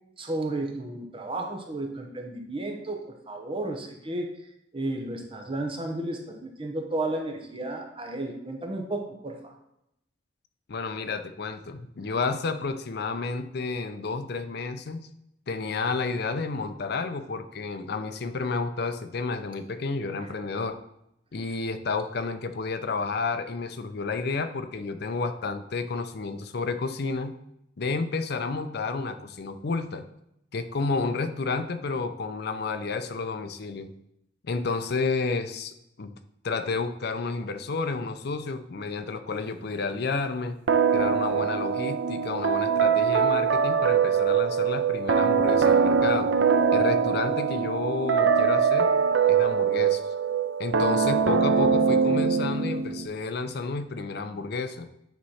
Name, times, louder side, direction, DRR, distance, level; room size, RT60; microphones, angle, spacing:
voice 1, 0.2-4.3 4.7-9.5 20.2-20.3, right 2 dB, 30° right, 3 dB, 0.9 m, -33 dB
voice 2, 10.7-15.0 15.5-20.8 21.3-27.4 27.8-30.1 30.5-33.9 34.4-36.2 36.4-40.6 40.9-46.3 46.7-48.9 49.3-50.0 50.6-54.9, left 4 dB, 60° left, 9 dB, 0.6 m, -31 dB
sound 1, 40.7-53.1, right 6 dB, 85° right, 0.5 m, -23 dB
9.1 x 3.1 x 5.6 m, 0.80 s
head